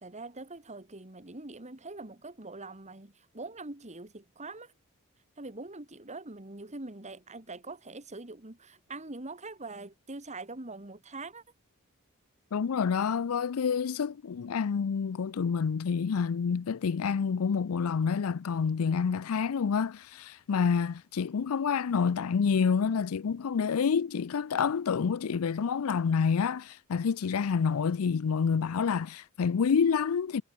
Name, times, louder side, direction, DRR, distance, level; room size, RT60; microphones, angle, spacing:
voice 1, 0.0-4.7 5.4-11.4, right 2 dB, 35° right, 2.6 m, -43 dB
voice 2, 12.5-30.4, left 6 dB, 85° left, 0.5 m, -28 dB
head